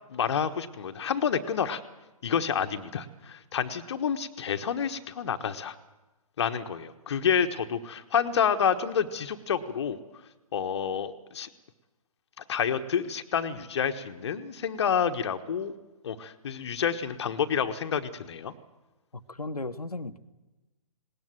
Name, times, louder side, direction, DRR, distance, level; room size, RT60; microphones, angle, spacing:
voice 1, 0.1-1.8 2.2-5.7 6.4-10.0 10.5-11.5 12.4-15.7 16.0-18.5, left 7 dB, 45° left, 8 dB, 1.3 m, -29 dB
voice 2, 19.1-20.2, left 2 dB, 85° left, 7 dB, 1.1 m, -36 dB
20.0 x 18.5 x 7.6 m, 1.1 s
figure-of-eight pair, 135°, 19 cm